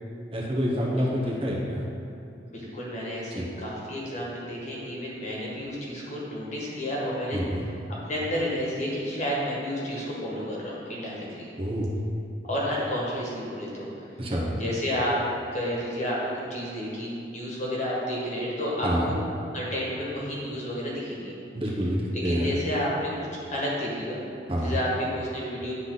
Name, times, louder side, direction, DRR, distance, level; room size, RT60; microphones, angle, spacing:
voice 1, 0.3-1.8 3.3-3.5 7.3-7.7 11.6-11.9 14.2-14.5 18.8-19.1 21.5-22.5 24.5-24.8, equal, 30° right, -3 dB, 0.8 m, -27 dB
voice 2, 0.9-1.3 2.5-7.4 8.0-11.5 12.4-13.9 14.6-15.2 15.5-19.2 19.5-21.3 22.1-23.1 23.5-24.2 24.6-25.7, equal, 40° left, -5 dB, 1.5 m, -31 dB
9.9 x 3.9 x 3.9 m, 2.6 s
head